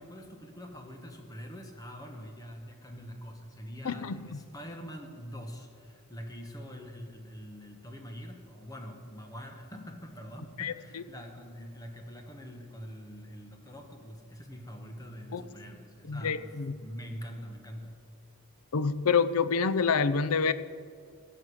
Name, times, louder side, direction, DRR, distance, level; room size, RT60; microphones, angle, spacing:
voice 1, 0.0-17.9, equal, 15° left, 3 dB, 1.3 m, -44 dB
voice 2, 3.8-4.4 10.6-11.0 15.3-15.4 16.1-16.8 18.7-20.5, left 5 dB, 80° left, 15 dB, 0.6 m, -28 dB
16.5 x 6.6 x 6.4 m, 2.4 s
head